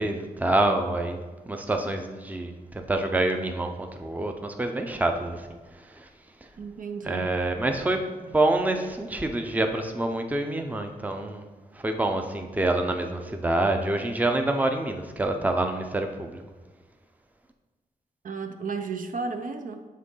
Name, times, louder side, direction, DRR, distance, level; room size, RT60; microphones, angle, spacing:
voice 1, 0.0-5.5 5.9-6.1 7.0-11.4 11.7-16.4, right 2 dB, 10° right, 4 dB, 0.6 m, -27 dB
voice 2, 6.6-7.3 18.2-19.9, right 4 dB, 60° right, 6 dB, 0.6 m, -33 dB
7.5 x 3.7 x 5.5 m, 1.3 s
wide cardioid pair, 125°, 15 cm